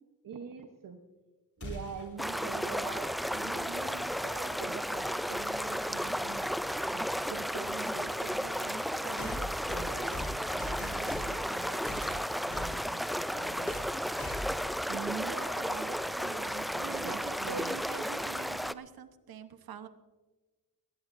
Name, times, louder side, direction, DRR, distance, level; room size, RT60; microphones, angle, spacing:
voice 1, 0.2-1.0 1.6-6.5 6.9-13.8 14.9-18.0, right 6 dB, 65° right, 5 dB, 1.2 m, -45 dB
sound 1, 1.6-2.2 4.3-4.4 5.5-5.6 9.2-11.5 11.8-12.8 13.7-13.9 14.2-14.7, left 1 dB, 40° left, 3.8 m, -41 dB
sound 2, 2.2-18.7, equal, ahead, 0.4 m, -34 dB
voice 2, 16.8-19.9, right 6 dB, 90° right, 10 dB, 1.1 m, -44 dB
20.0 x 16.5 x 2.7 m, 1.3 s
cardioid pair, 75°, 35 cm